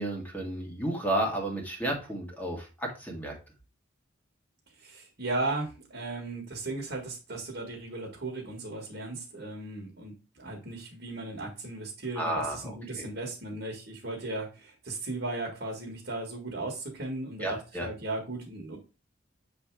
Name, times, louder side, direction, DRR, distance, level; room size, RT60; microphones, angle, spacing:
voice 1, 0.0-3.3 12.2-13.1 17.4-17.9, right 1 dB, 10° left, 0 dB, 1.7 m, -32 dB
voice 2, 4.8-18.8, right 2 dB, 50° right, 0 dB, 1.7 m, -36 dB
7.1 x 3.4 x 4.6 m, 0.31 s
head